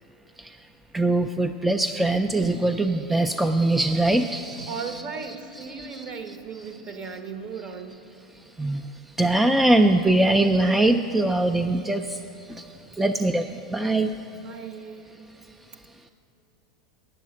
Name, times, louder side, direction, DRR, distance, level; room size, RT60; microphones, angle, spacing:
voice 1, 0.9-4.7 5.8-6.0 8.6-8.8 9.2-12.2 13.0-14.1, right 2 dB, 5° right, 6 dB, 0.3 m, -22 dB
voice 2, 4.7-8.0 14.3-15.2, right 5 dB, 40° right, 7 dB, 1.0 m, -37 dB
9.6 x 7.7 x 7.7 m, 2.9 s
hypercardioid pair, 105°, 3 cm